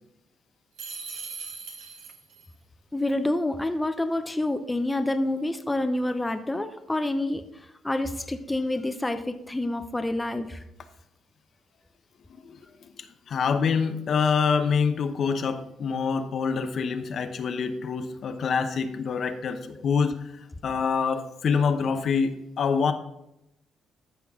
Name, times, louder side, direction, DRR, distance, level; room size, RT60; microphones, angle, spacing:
sound 1, 0.8-2.5, right 5 dB, 85° right, 2.1 m, -39 dB
voice 1, 2.9-7.4 7.8-10.6, left 1 dB, 15° left, 8 dB, 0.6 m, -28 dB
voice 2, 12.3-22.9, left 5 dB, 60° left, 8 dB, 0.8 m, -26 dB
13.5 x 5.8 x 3.6 m, 0.85 s
cardioid pair, 90°, 0 cm